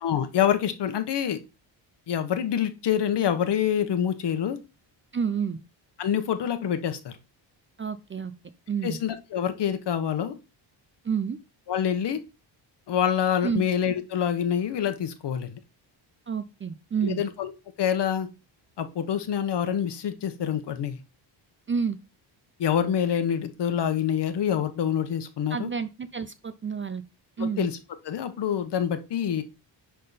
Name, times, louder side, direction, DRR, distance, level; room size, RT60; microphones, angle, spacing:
voice 1, 0.0-1.4 2.1-4.6 6.0-7.2 8.8-10.3 11.7-12.2 12.9-15.6 17.0-17.5 17.8-18.3 18.8-21.0 22.6-25.7 27.4-27.8 28.0-29.4, left 9 dB, 60° left, 9 dB, 1.1 m, -26 dB
voice 2, 5.1-5.6 7.8-8.3 8.7-9.0 11.0-11.4 13.4-13.7 16.3-17.2 21.7-22.0 25.5-27.0 27.4-27.7, right 6 dB, 30° right, 12 dB, 0.4 m, -29 dB
10.5 x 3.8 x 4.1 m, 0.30 s
wide cardioid pair, 140°, 46 cm